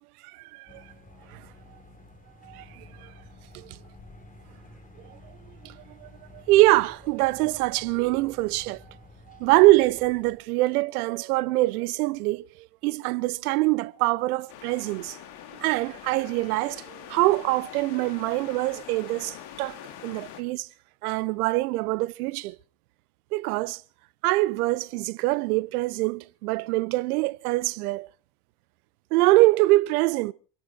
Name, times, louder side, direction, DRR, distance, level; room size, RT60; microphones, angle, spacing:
sound 1, 0.7-10.4, left 1 dB, 15° left, 4.3 m, -51 dB
voice 1, 6.0-8.8 9.3-12.5 12.8-15.2 15.6-20.7 21.0-22.5 23.3-23.8 24.2-28.1 29.1-30.3, right 19 dB, 60° right, 0.9 m, -24 dB
sound 2, 14.5-20.4, left 10 dB, 55° left, 2.7 m, -44 dB
27.0 x 10.5 x 4.7 m
figure-of-eight pair, 70°, 49 cm